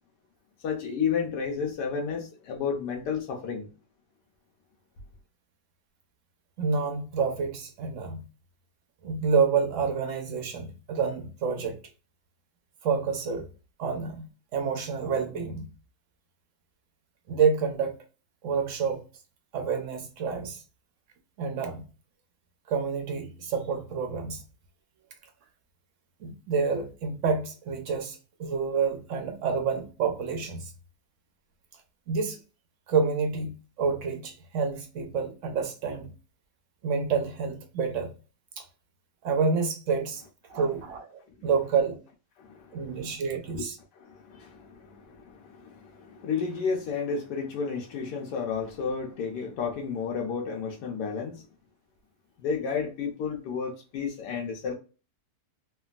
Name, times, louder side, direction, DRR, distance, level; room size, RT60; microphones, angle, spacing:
voice 1, 0.6-3.7 42.4-43.2 43.5-43.6 43.9-51.4 52.4-54.7, left 6 dB, 75° left, 1.2 m, -32 dB
voice 2, 6.6-8.2 9.0-11.8 12.8-13.5 13.8-15.7 17.3-18.0 18.4-19.0 19.5-20.6 21.4-21.8 22.7-24.4 26.2-30.7 32.1-32.4 32.9-36.1 36.8-38.1 38.6-38.7 39.2-40.2 40.5-41.1 41.4-42.0 42.7-43.8, right 5 dB, 70° right, 0.7 m, -28 dB
3.4 x 2.2 x 2.2 m
omnidirectional pair, 1.9 m